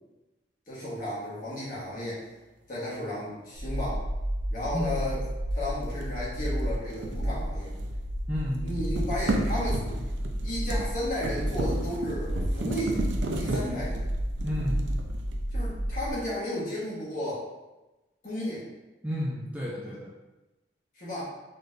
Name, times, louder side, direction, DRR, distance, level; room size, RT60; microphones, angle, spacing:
voice 1, 0.7-2.2 2.7-4.0 4.5-5.2 5.5-7.7 8.6-9.8 10.4-13.0 13.4-14.1 15.5-17.4 18.2-18.6 20.9-21.2, left 1 dB, 45° left, -7 dB, 1.4 m, -33 dB
sound 1, 3.5-16.1, equal, 90° left, 1.3 m, -32 dB
sound 2, 5.8-8.1 8.3-15.6, right 2 dB, 85° right, 0.5 m, -35 dB
voice 2, 8.3-8.6 14.4-14.8 19.0-20.1, equal, 10° right, -6 dB, 0.4 m, -31 dB
4.0 x 3.2 x 2.6 m, 1.0 s
head